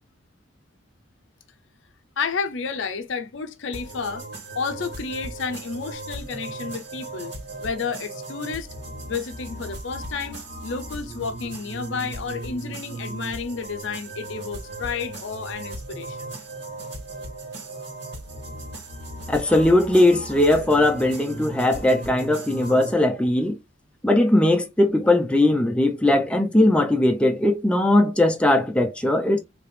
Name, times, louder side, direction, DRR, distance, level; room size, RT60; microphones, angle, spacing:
voice 1, 2.2-4.2 4.5-7.3 7.6-8.7 9.0-16.3, left 5 dB, 70° left, 0.5 m, -31 dB
sound 1, 3.7-22.9, right 2 dB, 60° right, 1.9 m, -37 dB
voice 2, 19.3-23.6 24.0-29.4, left 1 dB, 5° left, 0.5 m, -19 dB
3.3 x 2.9 x 3.2 m
head